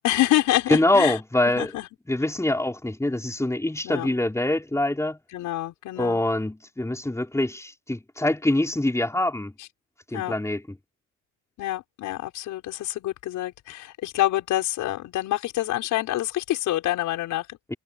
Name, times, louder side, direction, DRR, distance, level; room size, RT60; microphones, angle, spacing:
voice 1, 0.0-1.2 1.5-1.9 3.8-4.1 5.3-6.2 9.6-9.7 10.1-10.3 11.6-17.8, left 15 dB, 90° left, 6.2 m, -27 dB
voice 2, 0.7-1.7 2.1-5.2 6.0-9.5 10.1-10.6, left 1 dB, 10° left, 5.2 m, -24 dB
cardioid pair, 90°, 30 cm